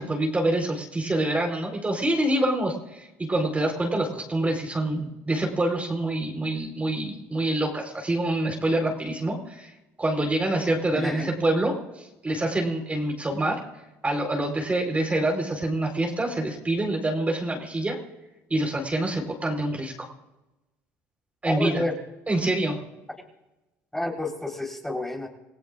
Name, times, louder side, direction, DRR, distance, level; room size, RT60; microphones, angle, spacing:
voice 1, 0.0-9.7 10.0-13.6 14.0-18.0 18.5-20.1 21.4-21.8 22.3-22.8, right 1 dB, 20° right, 1 dB, 4.2 m, -26 dB
voice 2, 10.9-11.3 21.5-21.9 23.9-25.3, left 1 dB, 5° left, -1 dB, 4.1 m, -29 dB
28.5 x 16.5 x 2.5 m, 0.99 s
supercardioid pair, 80°, 7 cm